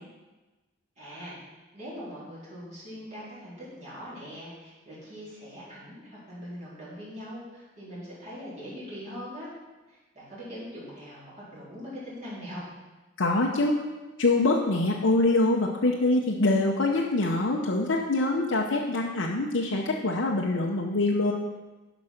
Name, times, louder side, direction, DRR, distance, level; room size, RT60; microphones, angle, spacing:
voice 1, 1.0-1.4 1.7-9.5 9.9-12.6, equal, 40° right, -9 dB, 3.9 m, -41 dB
voice 2, 13.2-13.8 14.2-21.3, left 2 dB, 80° left, -2 dB, 0.9 m, -24 dB
11.5 x 5.2 x 5.9 m, 1.2 s
head